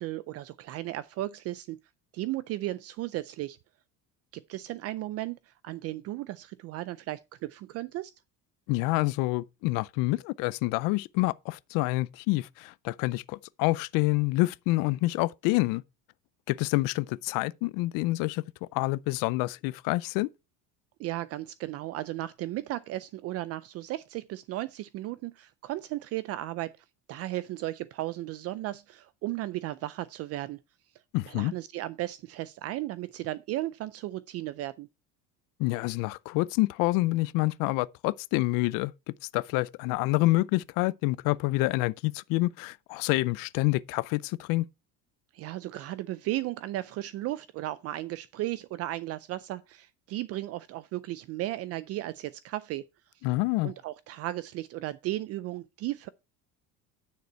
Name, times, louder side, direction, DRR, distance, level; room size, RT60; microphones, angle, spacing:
voice 1, 0.0-1.8 2.1-3.6 4.3-8.1 21.0-26.7 27.1-30.6 31.3-34.9 45.3-52.8 53.6-56.1, right 16 dB, 45° right, 0.4 m, -35 dB
voice 2, 8.7-15.8 16.5-18.4 18.7-20.3 31.1-31.5 35.6-38.9 39.3-44.6 53.2-53.7, left 21 dB, 65° left, 0.5 m, -27 dB
9.5 x 6.7 x 4.4 m
cardioid pair, 170°, 35 cm